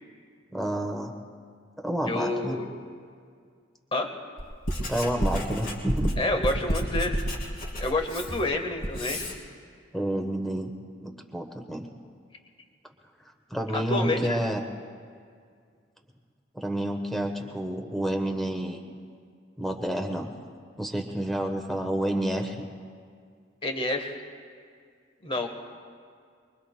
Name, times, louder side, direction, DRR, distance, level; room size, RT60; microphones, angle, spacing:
voice 1, 0.5-1.1 1.8-2.6 4.9-6.2 9.9-10.7 11.0-11.9 13.5-14.6 16.5-18.9 19.6-20.3 20.8-22.7, right 1 dB, ahead, 4 dB, 1.0 m, -29 dB
voice 2, 2.1-2.6 3.9-4.1 6.2-7.1 7.8-9.2 13.7-14.4 23.6-24.2 25.2-25.5, left 2 dB, 25° left, 4 dB, 1.2 m, -28 dB
Writing, 4.4-9.4, equal, 45° left, 3.1 m, -30 dB
24.0 x 24.0 x 2.2 m, 2.1 s
head